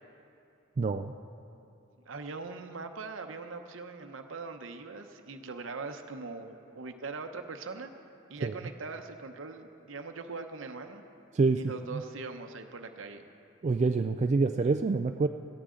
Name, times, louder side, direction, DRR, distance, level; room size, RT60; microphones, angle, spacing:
voice 1, 0.8-1.1 8.4-8.5 11.3-11.6 11.9-12.0 13.6-15.3, right 4 dB, 35° right, 7 dB, 0.3 m, -26 dB
voice 2, 2.0-7.9 8.3-11.0 11.6-13.2, right 4 dB, 70° right, 6 dB, 0.8 m, -41 dB
17.5 x 13.0 x 3.8 m, 2.8 s
head